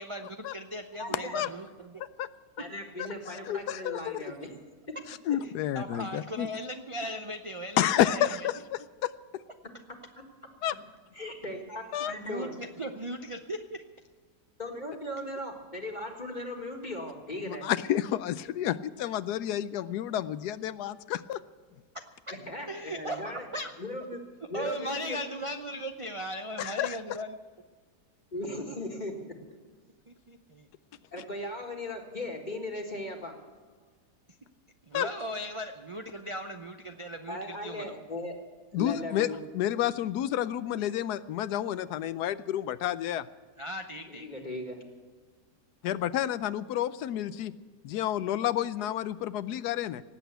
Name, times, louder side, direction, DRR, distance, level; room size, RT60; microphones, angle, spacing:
voice 1, 0.0-2.0 5.4-8.3 12.2-13.8 21.9-22.0 22.7-23.7 24.5-27.4 30.1-30.7 34.8-37.9 43.6-44.3, equal, 45° right, 5 dB, 0.4 m, -38 dB
voice 2, 1.0-1.4 2.6-4.5 11.1-12.5 14.6-17.6 22.3-23.5 23.8-24.2 24.5-25.2 28.3-29.4 31.1-33.3 37.3-38.3 38.7-39.4 44.1-44.8, left 1 dB, 25° left, 2 dB, 1.9 m, -37 dB
voice 3, 3.5-4.1 5.3-6.5 7.8-9.1 10.6-10.7 11.9-12.1 17.5-21.4 26.6-27.0 34.9-35.1 38.7-39.3 39.5-43.3 45.8-47.5 47.8-50.0, left 11 dB, 80° left, 15 dB, 1.2 m, -30 dB
18.0 x 8.2 x 8.0 m, 1.4 s
omnidirectional pair, 1.7 m